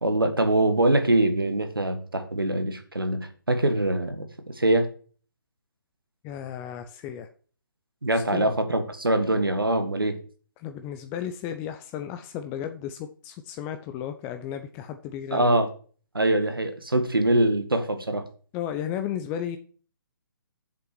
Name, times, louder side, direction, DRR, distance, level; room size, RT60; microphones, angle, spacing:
voice 1, 0.0-4.3 4.6-4.9 8.0-10.2 15.3-15.7 16.1-18.3, right 1 dB, 80° right, 7 dB, 1.7 m, -23 dB
voice 2, 6.2-7.3 8.1-8.5 10.6-15.6 18.5-19.6, left 9 dB, 20° left, 7 dB, 0.5 m, -34 dB
7.3 x 5.7 x 6.8 m, 0.41 s
figure-of-eight pair, 135°, 12 cm